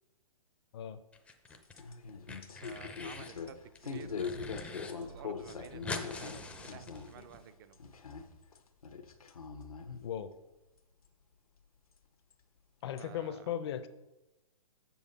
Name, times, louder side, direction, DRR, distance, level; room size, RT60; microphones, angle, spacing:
sound 1, 1.1-1.8 2.1-3.4 3.7-4.9 5.2-5.3 5.5-7.4, left 3 dB, 5° left, 0.5 m, -44 dB
sound 2, 1.5-7.2 7.5-8.6 8.8-10.0 11.0-11.1 12.3-12.4 13.0-13.1, left 5 dB, 80° left, 0.9 m, -42 dB
voice 1, 2.3-4.4 4.8-7.8 13.0-13.5, right 9 dB, 40° right, 13 dB, 0.5 m, -52 dB
Brass instrument, 3.8-8.1, right 5 dB, 70° right, 1.6 m, -57 dB
voice 2, 12.8-13.9, left 9 dB, 45° left, 11 dB, 0.6 m, -37 dB
7.1 x 6.8 x 4.1 m, 1.0 s
hypercardioid pair, 125°, 18 cm